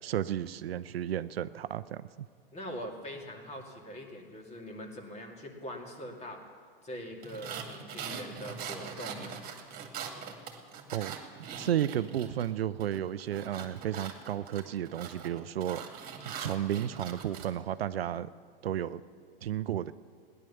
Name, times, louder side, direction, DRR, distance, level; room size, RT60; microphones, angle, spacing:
voice 1, 0.0-2.3 10.9-11.2 11.6-15.8 16.3-18.3 18.6-19.0 19.4-19.9, right 11 dB, 85° right, 14 dB, 0.6 m, -33 dB
voice 2, 2.5-6.4 6.8-9.4, equal, 20° left, 2 dB, 2.5 m, -42 dB
sound 1, 7.2-12.5 12.8-17.5, right 7 dB, 30° right, 2.3 m, -42 dB
16.5 x 11.0 x 7.1 m, 2.2 s
hypercardioid pair, 110°, 29 cm